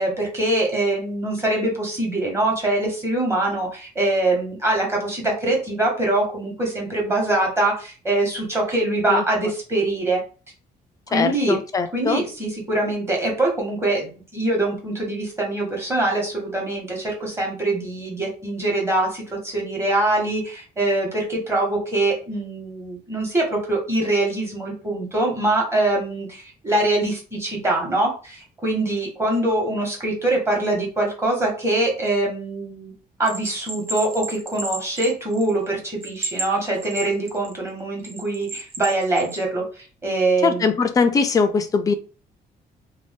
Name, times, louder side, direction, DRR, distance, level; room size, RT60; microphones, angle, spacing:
voice 1, 0.0-10.2 11.1-11.6 11.9-32.9 33.2-40.7, right 2 dB, 15° right, -2 dB, 1.1 m, -23 dB
voice 2, 11.1-12.2 40.4-41.9, left 5 dB, 20° left, 9 dB, 0.3 m, -21 dB
Bell, 33.3-35.7 36.0-37.5 38.0-39.4, right 3 dB, 35° right, 0.6 m, -32 dB
2.6 x 2.1 x 3.4 m, 0.36 s
cardioid pair, 155°, 16 cm